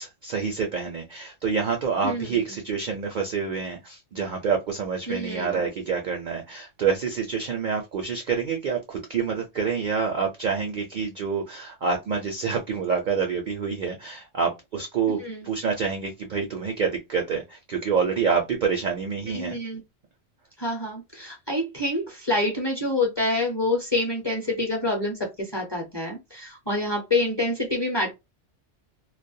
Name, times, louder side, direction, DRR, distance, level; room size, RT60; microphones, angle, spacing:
voice 1, 0.0-19.6, right 6 dB, 60° right, 0.5 m, -27 dB
voice 2, 5.1-5.6 15.2-15.4 19.3-19.8 20.6-28.1, left 1 dB, 30° left, 0.6 m, -27 dB
2.3 x 2.1 x 2.6 m
omnidirectional pair, 1.3 m